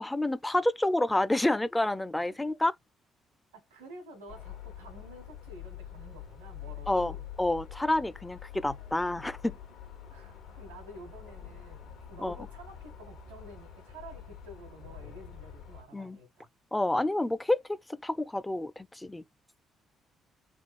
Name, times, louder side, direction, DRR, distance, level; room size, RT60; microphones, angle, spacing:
voice 1, 0.0-2.7 6.9-9.6 12.2-12.5 15.9-16.2 16.7-19.2, left 1 dB, 15° left, 0.4 m, -29 dB
voice 2, 3.5-7.2 10.1-16.5, right 1 dB, 90° right, 1.2 m, -50 dB
sound 1, 4.3-15.8, left 9 dB, 75° left, 1.3 m, -46 dB
3.5 x 2.3 x 4.2 m
hypercardioid pair, 45°, 0 cm